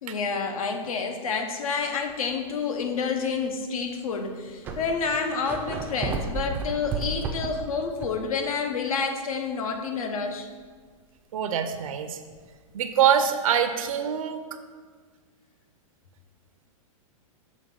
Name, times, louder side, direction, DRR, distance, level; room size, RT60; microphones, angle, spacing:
voice 1, 0.0-10.5, left 5 dB, 85° left, 5 dB, 0.9 m, -29 dB
sound 1, 2.1-2.4 3.0-3.1 4.0-4.1 4.3-8.3 8.6-8.7 12.3-12.4, right 4 dB, 10° right, 0.3 m, -33 dB
voice 2, 11.3-12.2 12.7-14.4, right 8 dB, 80° right, 8 dB, 0.5 m, -24 dB
6.3 x 3.1 x 5.4 m, 1.5 s
supercardioid pair, 160°, 18 cm